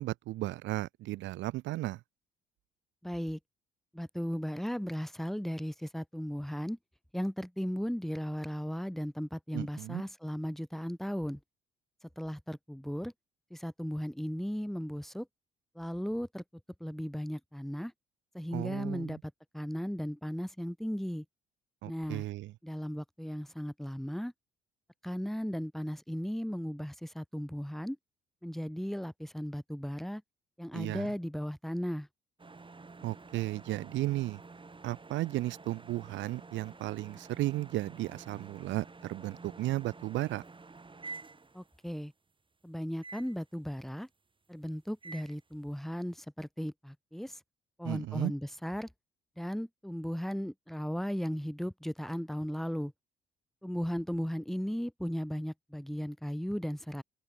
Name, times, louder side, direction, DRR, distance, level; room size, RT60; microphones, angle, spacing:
voice 1, 0.0-2.0 9.5-10.0 18.5-19.2 21.8-22.5 30.7-31.1 33.0-34.4 34.8-40.4 47.8-48.3, right 16 dB, 70° right, 0.7 m, -34 dB
voice 2, 3.0-3.4 3.9-6.8 7.1-11.4 12.2-13.1 13.5-15.3 15.8-16.4 16.8-17.9 18.3-21.2 21.8-22.2 22.6-24.3 25.0-28.0 28.4-30.2 30.6-32.1 41.5-42.1 42.6-44.1 44.5-47.4 47.8-48.9 49.4-52.9 53.6-57.0, equal, ahead, 1.2 m, -36 dB
sound 1, 32.4-41.9 43.0-43.4 45.0-45.4, right 3 dB, 25° right, 4.7 m, -50 dB
open air
hypercardioid pair, 60°, 20 cm